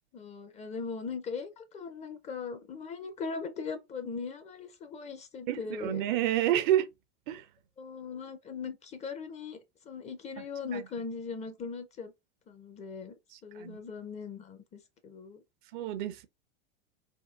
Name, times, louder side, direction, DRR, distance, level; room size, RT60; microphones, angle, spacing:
voice 1, 0.1-6.0 7.8-9.6 9.8-12.1 12.5-13.1 13.4-15.4, left 5 dB, 20° left, 0.5 m, -39 dB
voice 2, 5.5-6.9 7.3-7.4 13.6-13.8 15.7-16.3, right 12 dB, 55° right, 0.5 m, -28 dB
3.5 x 2.4 x 2.3 m
hypercardioid pair, 100°, 30 cm